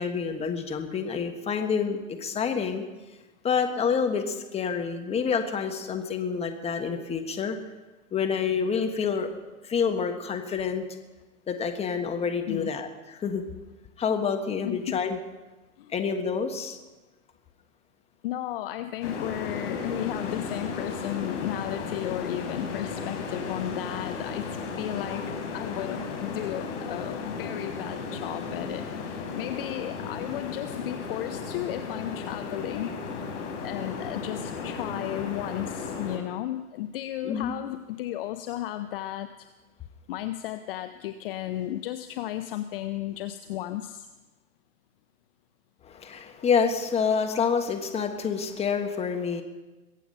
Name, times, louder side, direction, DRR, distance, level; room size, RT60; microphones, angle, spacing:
voice 1, 0.0-2.8 3.4-7.6 8.1-9.3 9.6-10.8 11.5-13.4 14.0-15.2 15.9-16.8 26.4-26.5 37.2-37.5 45.8-49.4, left 6 dB, 15° left, 5 dB, 1.4 m, -28 dB
voice 2, 14.6-15.0 15.8-15.9 18.2-39.3 40.1-44.1, left 13 dB, 40° left, 10 dB, 0.7 m, -34 dB
sound 1, 19.0-36.2, left 5 dB, 55° left, 3.8 m, -35 dB
22.5 x 8.4 x 5.5 m, 1.2 s
hypercardioid pair, 125°, 43 cm